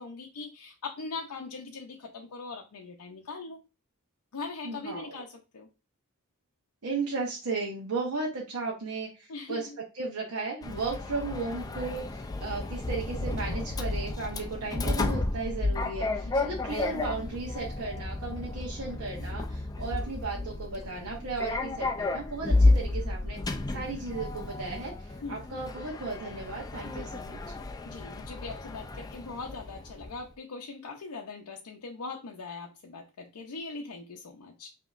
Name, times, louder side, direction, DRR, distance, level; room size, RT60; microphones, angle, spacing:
voice 1, 0.0-3.6 4.3-5.7 9.3-9.8 16.2-16.6 25.2-25.4 27.8-34.7, left 4 dB, 85° left, 0 dB, 0.6 m, -41 dB
voice 2, 4.6-5.2 6.8-9.7 9.9-27.4, right 3 dB, 70° right, -3 dB, 1.0 m, -35 dB
Sliding door, 10.6-30.2, left 2 dB, 15° left, 0.3 m, -31 dB
5.0 x 2.8 x 2.4 m, 0.29 s
head